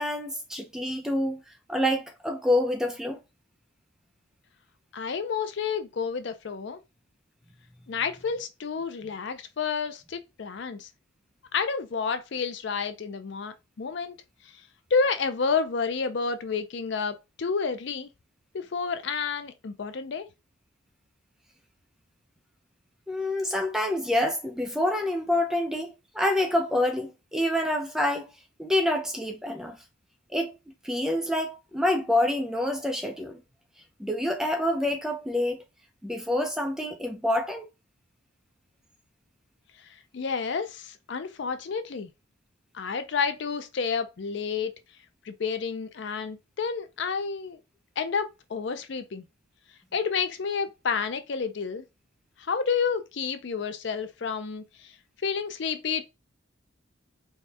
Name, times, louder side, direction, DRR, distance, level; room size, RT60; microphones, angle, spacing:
voice 1, 0.0-1.4 1.7-3.2 23.1-28.3 28.6-29.8 30.3-30.5 30.8-33.4 34.0-35.6 36.0-37.7, left 1 dB, ahead, 0.5 m, -27 dB
voice 2, 4.9-6.8 7.9-10.9 11.5-14.2 14.4-14.5 14.9-18.1 18.5-20.3 39.8-42.1 42.7-44.7 45.3-47.6 48.0-49.3 49.9-51.8 52.4-54.9 55.2-56.0, left 5 dB, 55° left, 0.4 m, -30 dB
4.2 x 2.3 x 3.4 m
head